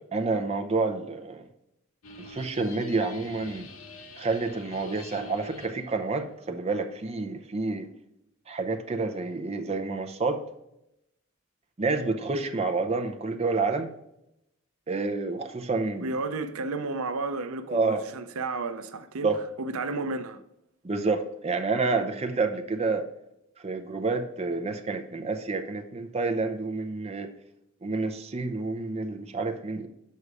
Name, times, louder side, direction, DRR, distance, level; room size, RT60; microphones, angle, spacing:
voice 1, 0.0-1.5 2.2-3.7 4.2-7.9 8.5-10.4 11.8-13.9 14.9-16.1 17.7-18.0 19.2-19.4 20.8-23.0 23.6-27.3 27.8-29.9, right 3 dB, 30° right, 0.6 m, -29 dB
sound 1, 2.0-5.8, left 2 dB, 80° left, 1.2 m, -43 dB
voice 2, 16.0-19.3 19.6-20.4, right 3 dB, 90° right, 0.6 m, -32 dB
6.5 x 5.4 x 4.7 m
head